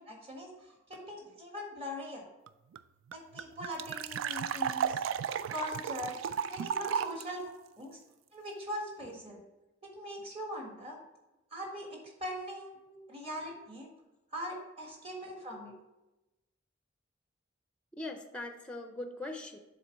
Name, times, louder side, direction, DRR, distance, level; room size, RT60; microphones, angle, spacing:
voice 1, 0.0-2.3 3.1-5.0 5.5-6.2 6.5-7.5 7.8-8.0 8.3-9.4 9.9-11.0 11.5-12.8 13.1-13.9 14.3-15.7, equal, 30° right, 0 dB, 1.6 m, -41 dB
sound 1, 2.5-2.6 2.7-2.8 3.1-7.2, right 8 dB, 85° right, 0.3 m, -34 dB
voice 2, 12.9-13.2 15.7-15.8 18.0-19.6, left 2 dB, 5° left, 5 dB, 0.5 m, -42 dB
7.4 x 3.9 x 5.2 m, 0.99 s
head